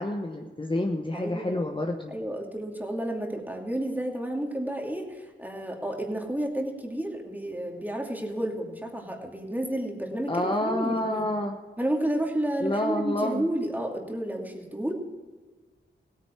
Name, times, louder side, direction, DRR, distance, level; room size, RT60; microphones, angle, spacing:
voice 1, 0.0-2.1 10.3-11.6 12.6-13.5, left 1 dB, 25° left, 3 dB, 1.1 m, -28 dB
voice 2, 1.1-1.6 2.1-11.2 11.8-14.9, right 1 dB, 10° right, 1 dB, 2.6 m, -31 dB
16.5 x 9.2 x 4.6 m, 1.4 s
cardioid pair, 50°, 21 cm